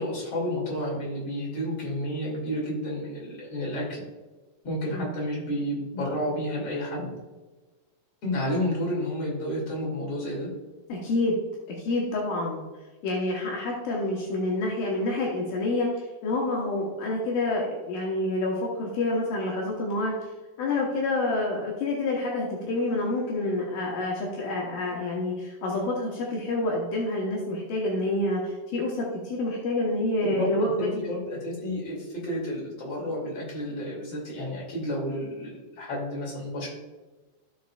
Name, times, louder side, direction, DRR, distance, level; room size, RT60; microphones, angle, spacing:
voice 1, 0.0-4.0 4.6-7.1 8.2-10.5 30.2-36.7, equal, 45° left, -4 dB, 3.4 m, -31 dB
voice 2, 10.9-11.4 11.8-12.6 13.0-20.1 20.6-30.9, left 2 dB, 80° left, -3 dB, 2.8 m, -28 dB
15.0 x 5.3 x 2.4 m, 1.2 s
omnidirectional pair, 4.0 m